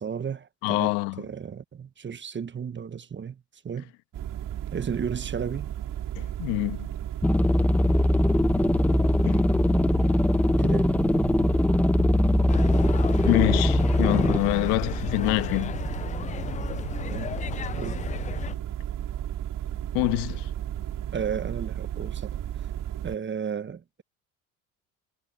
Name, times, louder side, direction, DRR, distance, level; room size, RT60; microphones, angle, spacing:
voice 1, 0.0-3.9 4.7-5.7 10.6-10.9 17.1-17.3 17.8-18.0 21.1-22.7 23.0-24.0, right 7 dB, 25° right, 1.4 m, -34 dB
voice 2, 0.6-1.2 6.2-6.9 9.2-9.4 12.0-12.1 13.2-15.8 19.9-20.5, left 25 dB, 70° left, 1.5 m, -26 dB
sound 1, 4.1-23.2, right 11 dB, 50° right, 5.3 m, -34 dB
sound 2, 7.2-14.4, left 1 dB, 5° left, 0.9 m, -21 dB
sound 3, 12.5-18.6, left 9 dB, 20° left, 0.3 m, -34 dB
hypercardioid pair, 80°, 41 cm